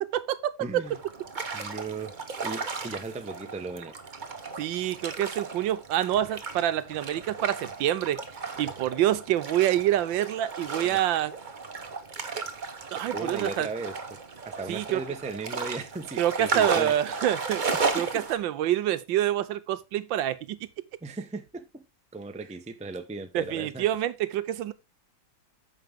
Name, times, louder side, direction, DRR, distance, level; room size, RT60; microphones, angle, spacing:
voice 1, 0.6-1.0 1.5-2.1 2.4-3.9 10.8-11.0 13.1-14.2 14.4-17.2 17.7-18.2 21.0-21.8 22.1-23.8, right 3 dB, 10° right, 0.5 m, -37 dB
sound 1, 0.8-18.4, right 4 dB, 30° right, 0.9 m, -35 dB
voice 2, 4.6-8.2 8.6-11.3 12.9-13.7 14.7-15.0 16.2-17.6 17.9-20.6 23.3-24.7, right 12 dB, 85° right, 1.4 m, -27 dB
9.3 x 6.7 x 3.5 m
omnidirectional pair, 2.1 m